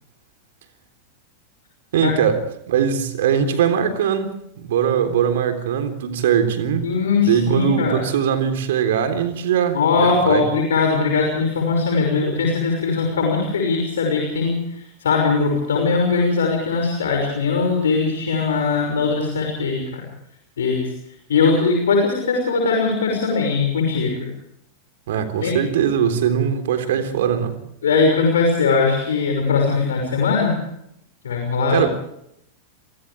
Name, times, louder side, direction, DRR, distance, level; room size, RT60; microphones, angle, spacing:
voice 1, 1.9-2.4 2.7-4.3 4.6-6.9 7.2-10.4 25.1-27.6 31.7-31.9, right 8 dB, 55° right, 7 dB, 3.6 m, -20 dB
voice 2, 6.8-8.0 9.7-14.6 15.0-19.8 20.6-20.9 21.3-24.3 25.4-25.6 27.8-30.5 31.2-31.9, left 4 dB, 65° left, 1 dB, 6.0 m, -20 dB
30.0 x 25.5 x 3.5 m, 0.75 s
figure-of-eight pair, 90°, 0 cm